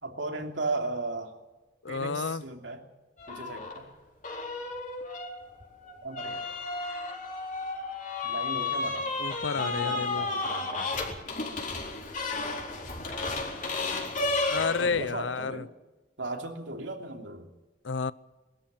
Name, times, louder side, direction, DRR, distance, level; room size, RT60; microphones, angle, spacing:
voice 1, 0.0-1.4 1.9-2.8 3.3-3.9 6.0-6.5 8.2-9.1 9.5-10.9 14.8-15.7 16.2-17.5, right 2 dB, 80° right, 3.0 m, -36 dB
voice 2, 1.8-2.4 9.2-10.3 14.5-15.6 17.8-18.1, left 5 dB, 85° left, 0.7 m, -30 dB
sound 1, 3.2-3.8 4.2-15.1, left 3 dB, 45° left, 4.2 m, -33 dB
22.0 x 13.5 x 9.1 m
head